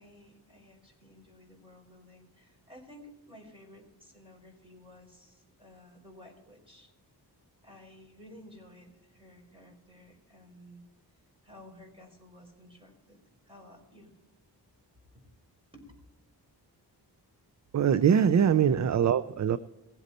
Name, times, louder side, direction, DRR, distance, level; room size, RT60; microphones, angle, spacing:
voice 1, 0.0-6.9 7.6-10.9 11.4-13.2 13.4-14.1 15.1-15.2 15.7-15.8 18.3-18.8, left 1 dB, 15° right, 0 dB, 4.9 m, -53 dB
voice 2, 17.7-19.6, right 8 dB, 45° right, 14 dB, 0.5 m, -23 dB
19.5 x 8.1 x 4.2 m, 0.97 s
wide cardioid pair, 105°, 40 cm